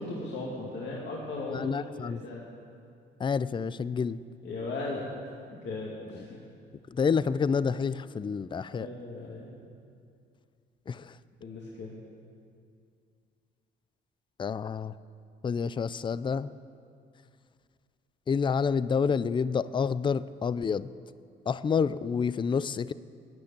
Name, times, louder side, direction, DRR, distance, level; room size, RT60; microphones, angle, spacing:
voice 1, 0.0-2.5 4.4-5.1 5.5-6.4 8.7-9.5 11.4-12.0, left 2 dB, 65° left, -4 dB, 2.3 m, -37 dB
voice 2, 1.5-2.2 3.2-4.2 6.1-6.2 6.9-8.9 10.9-11.2 14.4-14.9 15.4-16.5 18.3-20.9 21.5-22.9, left 6 dB, 25° left, 17 dB, 0.4 m, -28 dB
12.0 x 9.6 x 8.9 m, 2.3 s
cardioid pair, 90°, 20 cm